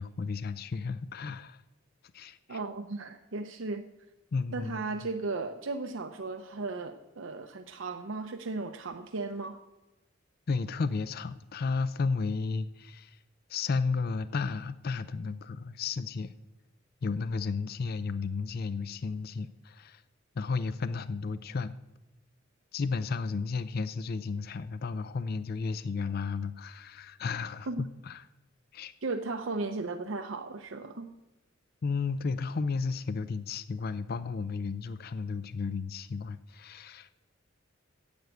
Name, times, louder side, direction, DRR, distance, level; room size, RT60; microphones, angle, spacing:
voice 1, 0.0-1.6 2.1-2.6 4.3-4.8 10.5-13.2 13.5-16.3 17.0-20.0 20.4-21.7 22.7-28.3 28.7-28.9 31.8-37.1, left 4 dB, 50° left, 14 dB, 0.4 m, -33 dB
voice 2, 2.5-3.8 4.5-9.6 27.7-27.9 29.0-31.1, right 3 dB, 75° right, 7 dB, 0.7 m, -36 dB
10.5 x 8.1 x 7.9 m, 0.99 s
head